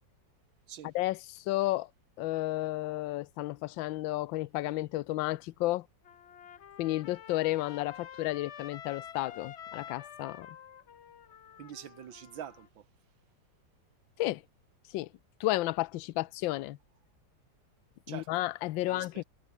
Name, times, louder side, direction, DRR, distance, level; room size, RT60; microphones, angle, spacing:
voice 1, 0.9-1.9 2.2-5.9 6.8-10.5 14.2-14.4 14.9-15.1 15.4-16.8 18.1-19.2, left 17 dB, 85° left, 1.4 m, -32 dB
Trumpet, 6.0-12.7, left 9 dB, 50° left, 0.8 m, -48 dB
voice 2, 11.6-12.9 18.1-18.3 18.9-19.2, right 10 dB, 90° right, 2.1 m, -45 dB
omnidirectional pair, 2.0 m